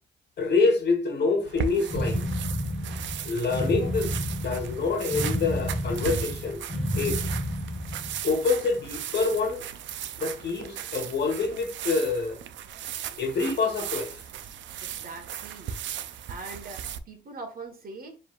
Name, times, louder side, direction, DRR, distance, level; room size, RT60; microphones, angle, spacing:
voice 1, 0.4-2.2 3.2-4.1 4.4-6.6 6.9-7.2 8.2-9.6 10.2-12.4 13.1-14.2, left 4 dB, 60° left, 1.4 m, -26 dB
sound 1, 1.5-17.0, right 9 dB, 70° right, 0.5 m, -37 dB
sound 2, 1.9-8.2, equal, ahead, 1.0 m, -31 dB
voice 2, 14.8-15.8 16.3-18.2, right 3 dB, 45° right, 1.4 m, -42 dB
4.7 x 3.5 x 2.4 m
cardioid pair, 90°, 20 cm